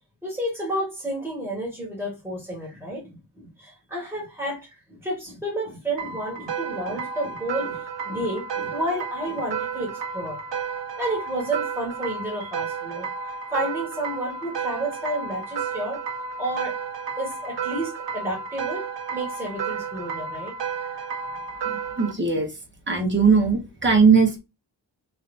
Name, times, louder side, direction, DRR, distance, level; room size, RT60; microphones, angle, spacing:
voice 1, 0.2-10.4 11.0-16.0 16.4-16.7 17.2-20.6 20.9-21.0, right 1 dB, 5° right, 1.6 m, -31 dB
sound 1, 6.0-22.1, right 6 dB, 75° right, 0.8 m, -32 dB
voice 2, 21.6-22.5 22.9-24.4, right 5 dB, 25° right, 1.1 m, -19 dB
3.4 x 2.8 x 2.5 m
wide cardioid pair, 130°, 43 cm